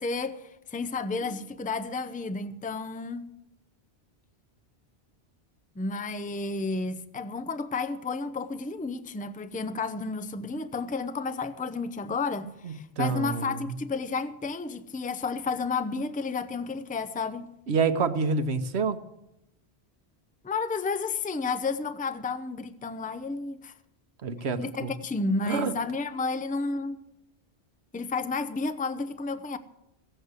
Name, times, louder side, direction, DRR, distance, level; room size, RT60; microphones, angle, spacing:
voice 1, 0.0-3.3 5.8-17.5 20.4-23.7 24.6-27.0 27.9-29.6, left 4 dB, 10° left, 0.5 m, -31 dB
voice 2, 12.6-13.7 17.7-19.0 24.2-24.9 25.5-25.7, right 4 dB, 80° right, 1.2 m, -28 dB
16.5 x 7.9 x 8.0 m
omnidirectional pair, 1.1 m